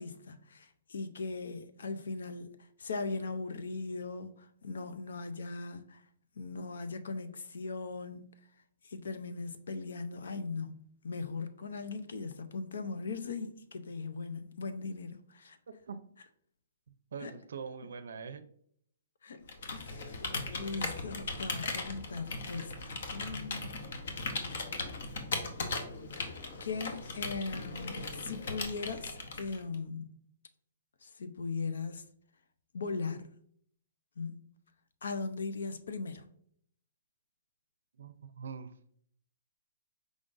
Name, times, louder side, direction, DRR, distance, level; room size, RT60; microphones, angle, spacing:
voice 1, 0.0-6.0 6.4-8.3 8.8-15.6 17.2-17.4 19.2-19.5 19.7-20.0 20.5-23.7 24.8-25.0 26.6-30.2 31.0-32.0 32.7-33.3 34.2-34.4 35.0-36.2, left 4 dB, 80° left, 0.6 m, -39 dB
voice 2, 15.7-16.0 17.1-18.4 38.0-38.7, right 6 dB, 70° right, 0.5 m, -43 dB
Computer keyboard, 19.5-29.8, left 3 dB, 55° left, 0.8 m, -38 dB
4.9 x 3.8 x 2.5 m
hypercardioid pair, 175°, 0 cm